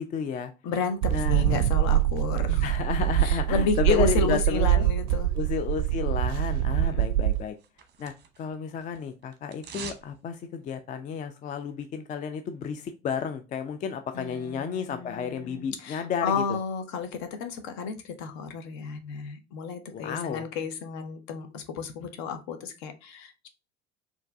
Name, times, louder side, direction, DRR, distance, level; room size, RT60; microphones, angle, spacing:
voice 1, 0.0-0.5 1.1-1.5 2.6-4.9 5.4-7.6 8.0-8.1 8.4-16.6 19.9-20.4, left 6 dB, 20° left, 9 dB, 0.4 m, -32 dB
voice 2, 0.6-2.7 3.2-5.3 6.8-7.1 14.1-23.5, left 5 dB, 50° left, 7 dB, 1.0 m, -32 dB
sound 1, 1.0-7.4, right 13 dB, 60° right, 0.5 m, -24 dB
sound 2, 7.3-8.6 8.8-10.1 10.4-10.5, right 7 dB, 30° right, 0.9 m, -43 dB
4.5 x 2.9 x 3.4 m, 0.29 s
figure-of-eight pair, 65°, 36 cm